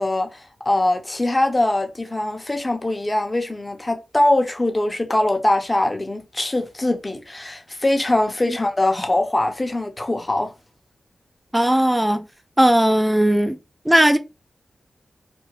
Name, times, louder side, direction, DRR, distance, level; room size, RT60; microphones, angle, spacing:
voice 1, 0.0-10.5, left 1 dB, 30° left, 0.8 m, -22 dB
voice 2, 11.5-12.3 12.6-13.6 13.8-14.2, right 1 dB, 10° right, 0.5 m, -17 dB
3.4 x 2.2 x 3.1 m
cardioid pair, 45°, 0 cm